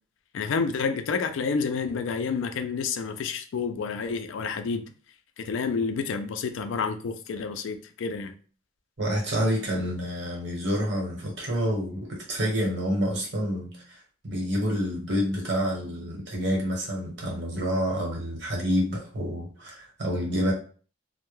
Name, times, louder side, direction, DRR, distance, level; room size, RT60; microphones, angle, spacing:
voice 1, 0.3-4.8 5.4-8.4, left 5 dB, 75° left, 8 dB, 0.3 m, -29 dB
voice 2, 9.0-14.0 14.2-20.5, equal, 55° right, -2 dB, 0.9 m, -28 dB
2.2 x 2.0 x 3.0 m, 0.40 s
head